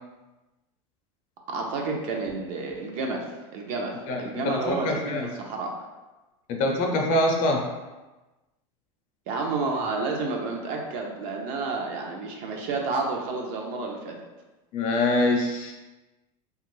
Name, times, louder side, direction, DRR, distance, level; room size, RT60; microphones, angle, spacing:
voice 1, 1.5-3.9 4.2-5.7 9.3-14.2, right 3 dB, 55° right, 1 dB, 0.6 m, -30 dB
voice 2, 4.1-5.3 6.5-7.7 14.7-15.7, left 1 dB, 50° left, 2 dB, 0.6 m, -24 dB
2.9 x 2.4 x 3.1 m, 1.1 s
supercardioid pair, 135°, 18 cm